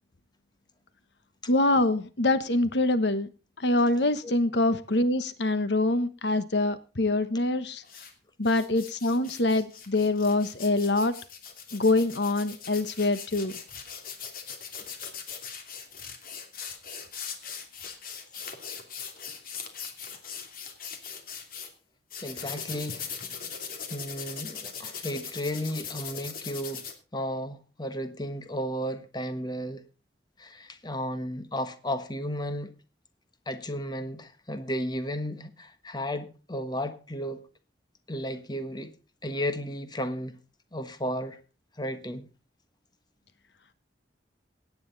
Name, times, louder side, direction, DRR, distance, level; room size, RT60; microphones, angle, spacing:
voice 1, 1.5-3.3 3.6-7.8 8.4-11.1 11.7-13.5, left 2 dB, 70° left, 1.2 m, -25 dB
sound 1, 7.8-8.1 8.4-21.7 22.1-26.9, left 6 dB, 50° left, 2.8 m, -40 dB
voice 2, 22.2-23.1 23.9-26.8 27.1-29.8 30.4-32.8 33.5-37.4 38.1-38.9 39.2-40.4 40.7-41.4 41.8-42.3, equal, 25° left, 1.3 m, -33 dB
17.5 x 9.6 x 4.1 m
head